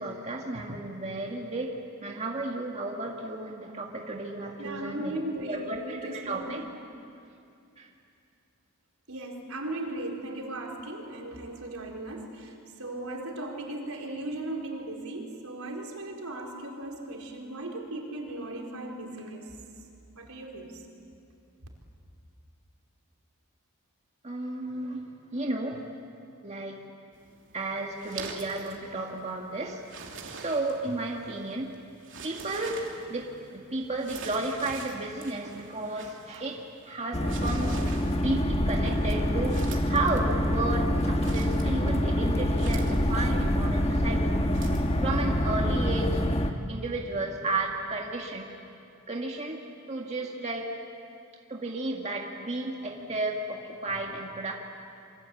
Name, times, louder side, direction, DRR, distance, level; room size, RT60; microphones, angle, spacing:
voice 1, 0.0-1.8 2.0-5.2 5.5-6.6 7.8-7.9 24.2-25.1 25.3-25.9 26.4-26.8 27.5-29.8 30.3-31.7 32.2-37.8 38.2-44.2 45.0-46.2 46.7-48.5 49.1-49.6 49.9-50.7 51.5-54.5, right 2 dB, 30° right, 0 dB, 1.9 m, -33 dB
voice 2, 4.6-6.7 9.1-19.6 20.1-20.8, right 1 dB, 75° right, 0 dB, 4.4 m, -37 dB
sound 1, 27.1-44.9, right 4 dB, 60° right, 3.0 m, -46 dB
sound 2, 37.1-46.5, equal, 30° left, 1.4 m, -26 dB
28.0 x 24.5 x 8.5 m, 2.6 s
head